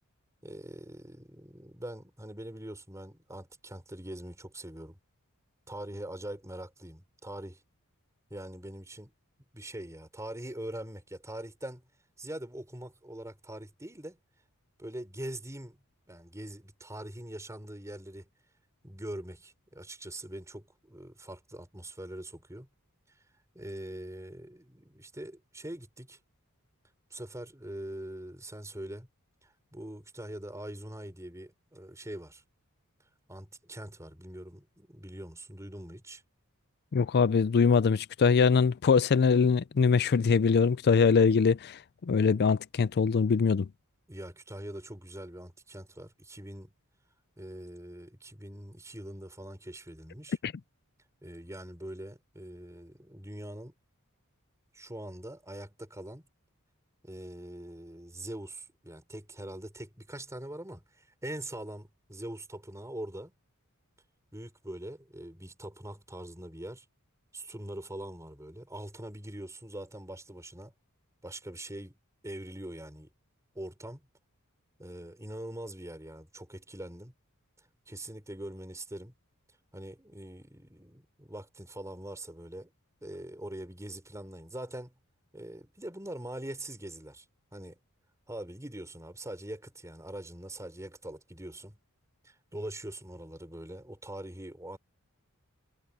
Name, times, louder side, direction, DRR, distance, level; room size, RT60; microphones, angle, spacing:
voice 1, 0.4-5.0 5.7-7.6 8.3-9.1 9.5-11.8 12.2-14.2 14.8-15.8 16.1-18.3 18.8-22.7 23.5-26.2 27.1-29.1 29.4-32.4 33.3-36.2 44.1-46.7 47.4-50.4 51.2-53.7 54.7-56.2 57.0-60.8 61.2-63.3 64.3-66.8 67.3-70.7 71.2-71.9 72.2-73.1 73.5-74.0 74.8-77.1 77.9-79.1 79.7-82.7 83.0-84.9 85.3-87.2 87.5-87.8 88.3-91.8 92.2-94.8, right 1 dB, 15° right, 4.7 m, -43 dB
voice 2, 36.9-43.7 50.4-50.5, left 5 dB, 45° left, 0.4 m, -23 dB
head